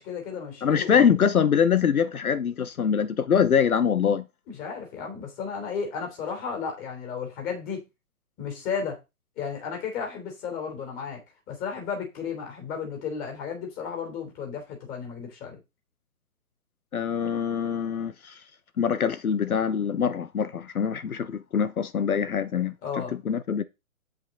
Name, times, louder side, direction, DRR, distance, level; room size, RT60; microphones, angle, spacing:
voice 1, 0.0-1.0 4.5-7.8 8.4-9.0 9.4-11.2 11.5-15.6 22.8-23.2, left 6 dB, 20° left, 3.3 m, -33 dB
voice 2, 0.6-4.2 16.9-18.4 18.8-22.7 23.3-23.6, left 7 dB, 80° left, 0.9 m, -24 dB
8.0 x 7.9 x 3.8 m
figure-of-eight pair, 140°, 42 cm